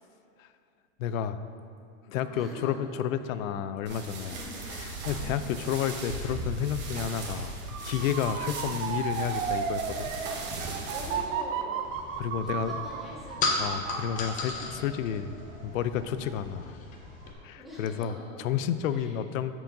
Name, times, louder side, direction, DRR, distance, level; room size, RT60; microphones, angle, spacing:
voice 1, 1.0-1.4 2.1-4.4 4.7-7.6 7.8-10.1 12.2-12.7 13.6-15.3 15.6-16.8 17.4-19.5, left 9 dB, 75° left, 12 dB, 0.5 m, -31 dB
voice 2, 2.1-2.7 4.2-4.6 5.0-5.4 10.6-11.9 12.4-13.8 14.6-15.0 16.0-16.3 17.6-18.3 18.9-19.1, equal, ahead, -8 dB, 1.5 m, -45 dB
sound 1, 3.9-11.2, right 2 dB, 25° right, 1.0 m, -38 dB
Motor vehicle (road) / Siren, 7.7-16.6 17.0-17.4, right 7 dB, 70° right, 0.7 m, -35 dB
sound 2, 11.8-17.3, left 3 dB, 20° left, 0.5 m, -35 dB
12.5 x 4.6 x 2.6 m, 2.4 s
supercardioid pair, 140°, 40 cm